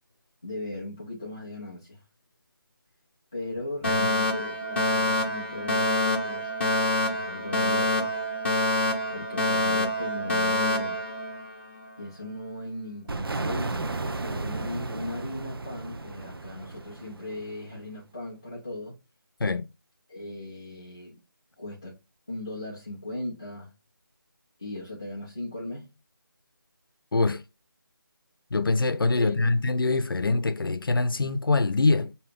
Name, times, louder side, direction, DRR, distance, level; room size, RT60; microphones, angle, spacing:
voice 1, 0.4-2.0 3.3-6.5 7.0-8.2 9.1-11.0 12.0-19.0 20.1-21.2 21.6-21.9 22.3-23.7 24.6-25.9 29.2-29.5, left 1 dB, 15° left, 0.4 m, -38 dB
Alarm, 3.8-11.9, left 1 dB, 30° left, 0.9 m, -26 dB
sound 1, 13.1-17.7, right 3 dB, 85° right, 0.6 m, -34 dB
voice 2, 27.1-27.4 28.5-32.1, left 3 dB, 70° left, 0.6 m, -24 dB
4.7 x 2.8 x 3.5 m
figure-of-eight pair, 175°, 12 cm